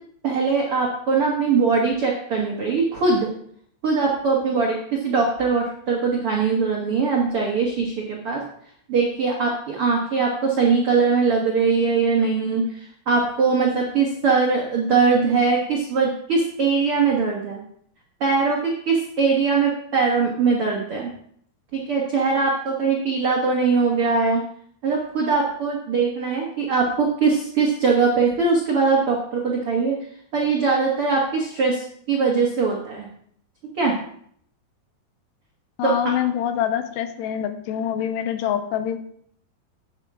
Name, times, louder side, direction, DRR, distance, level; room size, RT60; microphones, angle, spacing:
voice 1, 0.2-3.3 3.8-8.4 8.9-17.6 18.2-21.1 21.7-24.4 24.8-29.9 30.3-33.1 33.8-34.0 35.8-36.1, right 4 dB, 75° right, -2 dB, 1.2 m, -21 dB
voice 2, 35.8-39.0, left 10 dB, 85° left, 9 dB, 2.8 m, -25 dB
11.0 x 8.9 x 3.7 m, 0.65 s
omnidirectional pair, 5.0 m